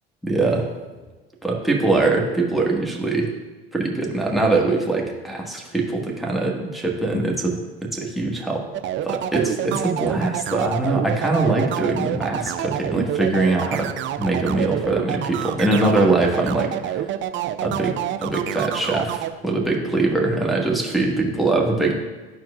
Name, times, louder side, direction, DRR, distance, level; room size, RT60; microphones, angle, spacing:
voice 1, 0.2-0.7 1.4-3.4 3.7-8.6 9.0-17.1 17.6-22.0, right 2 dB, ahead, -3 dB, 1.6 m, -22 dB
sound 1, 8.7-19.3, right 12 dB, 40° right, 0.5 m, -27 dB
12.5 x 4.5 x 2.5 m, 1.3 s
hypercardioid pair, 70°, 30 cm